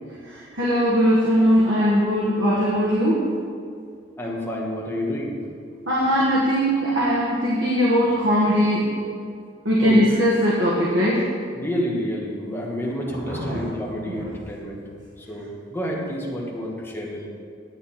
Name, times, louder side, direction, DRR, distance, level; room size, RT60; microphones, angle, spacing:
voice 1, 0.2-3.3 5.8-8.9 9.6-11.3 13.1-13.6 14.1-14.3, equal, 85° right, -6 dB, 1.7 m, -20 dB
voice 2, 4.2-5.3 9.8-10.0 11.5-14.8 15.2-17.3, equal, 10° left, -3 dB, 1.6 m, -29 dB
9.9 x 8.5 x 4.3 m, 2.3 s
head